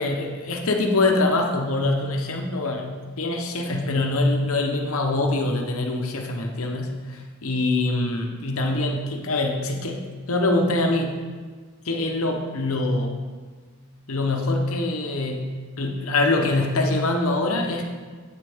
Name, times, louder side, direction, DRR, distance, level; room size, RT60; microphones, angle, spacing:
voice 1, 0.0-11.2 11.8-13.1 14.1-17.9, left 2 dB, 70° left, 2 dB, 0.9 m, -24 dB
8.8 x 7.6 x 3.6 m, 1.5 s
head